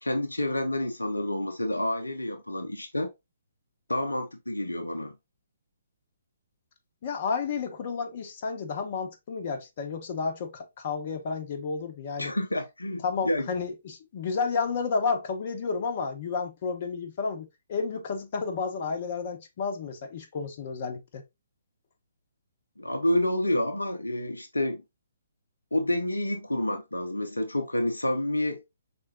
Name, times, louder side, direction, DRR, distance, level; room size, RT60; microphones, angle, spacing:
voice 1, 0.0-3.1 3.9-5.1 12.2-13.5 22.8-24.8 25.7-28.6, left 1 dB, 80° left, 0.7 m, -29 dB
voice 2, 7.0-12.3 13.0-21.2, left 5 dB, 40° left, 1.0 m, -31 dB
4.9 x 3.6 x 2.7 m
figure-of-eight pair, 130°, 0 cm